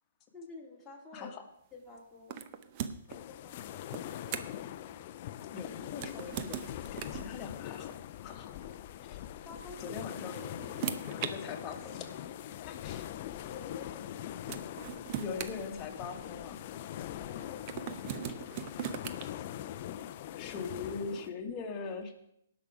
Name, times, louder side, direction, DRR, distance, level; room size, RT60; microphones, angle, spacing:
voice 1, 0.3-1.3 1.7-2.4 3.3-3.8 9.4-10.0 13.4-14.3 17.2-18.2, left 3 dB, 5° left, -5 dB, 2.6 m, -50 dB
sound 1, 2.3-3.2 3.9-4.7 5.9-7.3 8.6-8.7 9.9-11.3 12.3-12.4 14.0-14.1 14.5-16.3 17.7-19.2, right 9 dB, 35° right, 0.8 m, -39 dB
sound 2, 3.1-21.3, left 11 dB, 45° left, 0.5 m, -42 dB
voice 2, 5.5-7.9 8.2-8.5 9.0-9.2 9.8-10.5 11.0-12.1 12.7-13.1 15.2-16.6 18.3-18.4 20.4-22.1, left 5 dB, 25° left, 3 dB, 1.6 m, -41 dB
18.5 x 6.1 x 4.9 m, 0.75 s
hypercardioid pair, 145°, 0 cm